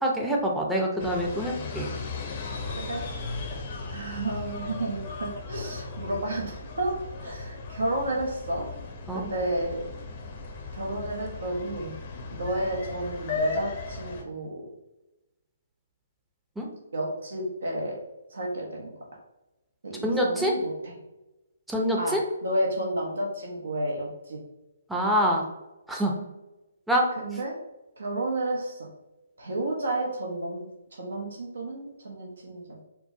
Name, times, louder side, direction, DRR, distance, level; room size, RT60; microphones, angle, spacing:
voice 1, 0.0-1.9 9.1-9.2 16.6-16.7 20.0-20.5 21.7-22.2 24.9-25.4 25.9-26.1 26.9-27.1, equal, 5° right, -2 dB, 0.6 m, -25 dB
sound 1, 1.0-14.2, left 3 dB, 40° left, 0.6 m, -36 dB
voice 2, 2.7-3.0 3.9-8.7 9.1-9.8 10.7-11.9 12.3-14.7 16.9-18.0 18.3-18.9 19.8-20.9 21.9-24.4 27.2-27.5 28.0-28.9 29.4-30.6 30.9-32.6, right 1 dB, 75° right, -1 dB, 0.8 m, -31 dB
4.5 x 2.0 x 2.7 m, 1.0 s
figure-of-eight pair, 140°, 0 cm